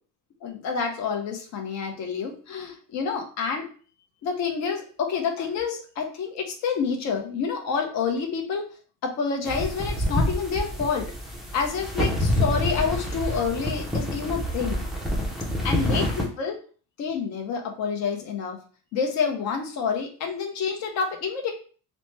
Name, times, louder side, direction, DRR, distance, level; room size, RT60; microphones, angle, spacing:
voice 1, 0.4-3.7 4.2-8.7 9.0-11.1 11.5-14.8 15.6-16.6 17.0-18.6 18.9-21.5, left 5 dB, 55° left, 3 dB, 0.6 m, -28 dB
sound 1, 9.4-16.2, left 1 dB, ahead, 0.3 m, -27 dB
2.9 x 2.0 x 3.2 m, 0.40 s
cardioid pair, 165°, 34 cm